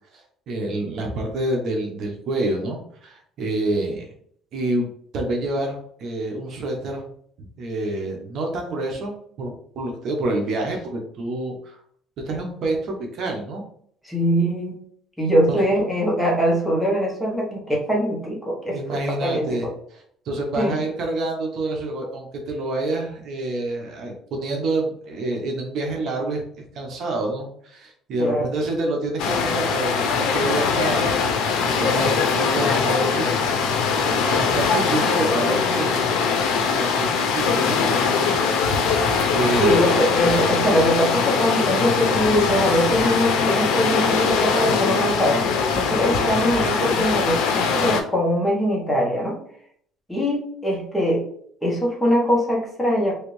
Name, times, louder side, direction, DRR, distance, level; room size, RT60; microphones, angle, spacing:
voice 1, 0.1-4.1 4.5-7.1 7.4-9.1 9.4-11.8 12.3-13.6 15.5-15.6 18.7-19.7 20.2-36.0 36.7-38.6 39.3-39.8, right 2 dB, 55° right, 1 dB, 0.8 m, -27 dB
voice 2, 14.0-14.8 15.2-19.6 20.6-20.8 28.2-28.5 39.6-45.4 45.7-49.4 50.1-51.2 51.6-53.1, equal, 5° left, -3 dB, 1.0 m, -22 dB
sound 1, 29.2-48.0, left 5 dB, 80° left, 0.5 m, -21 dB
3.2 x 2.6 x 3.0 m, 0.63 s
cardioid pair, 125°, 0 cm